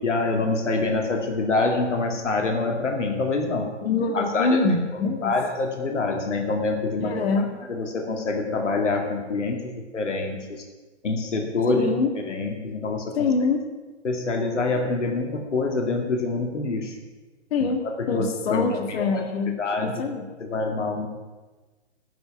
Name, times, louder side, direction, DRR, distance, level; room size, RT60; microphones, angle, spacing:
voice 1, 0.0-3.7 4.1-4.6 5.0-7.2 7.7-10.6 11.0-11.9 12.3-13.3 14.0-17.0 17.6-19.2 19.6-20.0 20.4-21.1, left 3 dB, 80° left, 3 dB, 2.3 m, -26 dB
voice 2, 3.8-5.3 7.0-7.5 11.7-12.4 13.1-13.6 17.5-17.8 18.1-20.2, left 4 dB, 55° left, 6 dB, 1.6 m, -24 dB
12.5 x 5.8 x 9.2 m, 1.2 s
hypercardioid pair, 140°, 36 cm